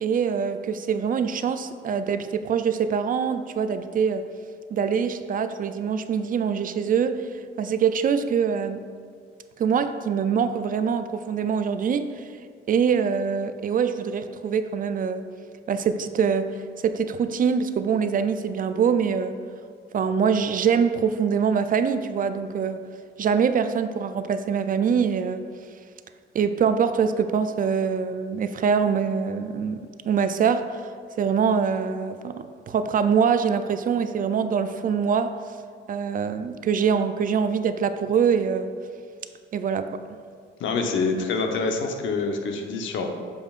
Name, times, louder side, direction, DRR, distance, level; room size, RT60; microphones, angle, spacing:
voice 1, 0.0-4.3 4.7-8.8 9.6-12.3 12.7-15.2 15.7-19.4 19.9-22.8 23.2-25.4 26.3-29.8 30.1-30.8 31.2-35.4 35.9-38.7 39.5-40.0, right 6 dB, 45° right, 10 dB, 0.4 m, -24 dB
voice 2, 40.6-43.0, left 4 dB, 75° left, 3 dB, 0.9 m, -26 dB
8.5 x 5.4 x 2.5 m, 2.1 s
cardioid pair, 90°, 20 cm